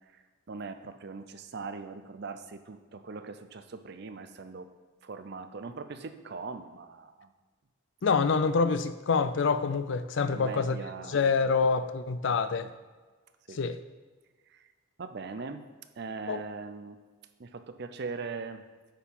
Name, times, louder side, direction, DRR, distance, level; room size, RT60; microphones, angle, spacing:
voice 1, 0.5-4.7 5.0-7.3 10.3-11.8 12.3-12.7 13.5-13.6 14.5-14.7 15.0-15.6 16.0-17.0 17.4-18.6, right 4 dB, 50° right, 9 dB, 0.5 m, -41 dB
voice 2, 8.0-10.8 11.1-12.7 13.5-13.8 16.3-16.4, left 5 dB, 60° left, 12 dB, 0.4 m, -26 dB
9.0 x 4.5 x 5.4 m, 1.3 s
head